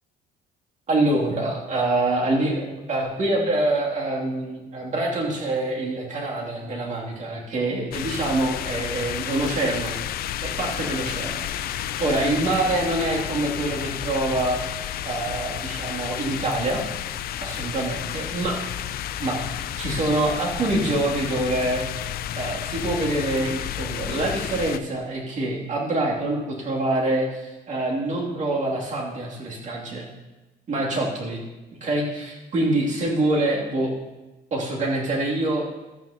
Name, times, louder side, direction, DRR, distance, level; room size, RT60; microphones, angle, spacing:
voice 1, 0.9-9.9 10.4-11.4 11.7-14.6 15.0-16.8 17.4-18.6 19.2-21.9 22.3-30.1 30.7-31.4 31.8-34.0 34.5-35.7, right 2 dB, 45° right, -3 dB, 3.0 m, -25 dB
sound 1, 7.9-24.8, left 11 dB, 65° left, 0.5 m, -31 dB
13.0 x 10.0 x 3.0 m, 1.1 s
cardioid pair, 110°, 17 cm